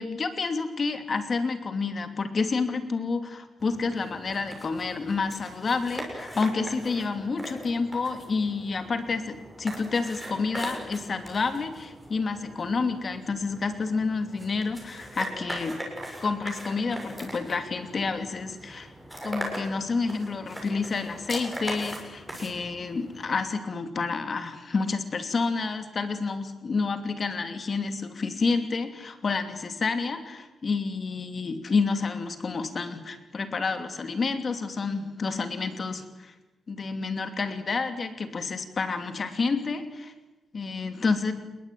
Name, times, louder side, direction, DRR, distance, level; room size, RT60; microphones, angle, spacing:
voice 1, 0.0-15.8 16.2-18.9 19.2-36.3 36.7-40.1 40.5-41.3, left 4 dB, 35° left, 8 dB, 2.8 m, -29 dB
sound 1, 3.6-23.5, equal, 5° right, 7.3 m, -40 dB
28.5 x 21.5 x 9.4 m, 1.1 s
wide cardioid pair, 170°, 0 cm